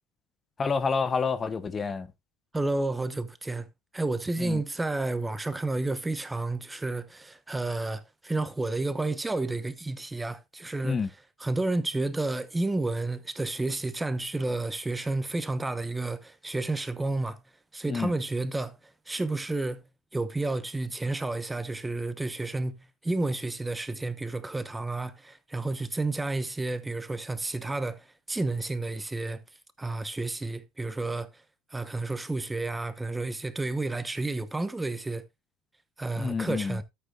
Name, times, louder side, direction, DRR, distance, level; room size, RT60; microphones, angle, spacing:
voice 1, 0.6-2.1 4.4-4.6 10.8-11.1 17.9-18.1 36.2-36.8, left 5 dB, 30° left, 0.9 m, -28 dB
voice 2, 2.5-3.7 3.9-11.0 11.4-17.4 17.7-18.8 19.1-19.8 20.1-29.4 29.8-31.3 31.7-35.2 36.0-36.8, right 2 dB, 10° right, 0.9 m, -31 dB
13.0 x 8.1 x 2.4 m
hypercardioid pair, 70°, 0 cm